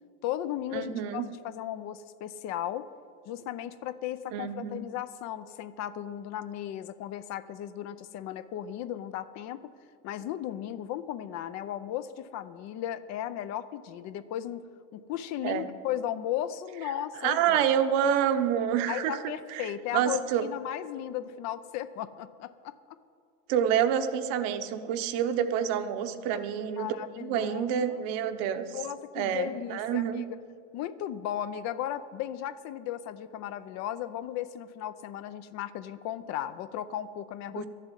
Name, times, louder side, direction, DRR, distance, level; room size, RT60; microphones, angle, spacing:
voice 1, 0.2-2.9 3.3-9.7 10.0-14.6 14.9-17.7 18.9-23.0 26.3-26.4 26.8-28.0 28.7-30.4 30.7-37.7, left 11 dB, 45° left, 13 dB, 0.6 m, -36 dB
voice 2, 0.7-1.3 4.3-4.8 15.4-15.7 17.2-19.2 19.5-20.4 23.5-26.9 27.2-28.8 29.1-30.2 37.6-37.7, right 9 dB, 60° right, 8 dB, 1.0 m, -28 dB
12.0 x 7.5 x 9.0 m, 2.3 s
supercardioid pair, 140°, 37 cm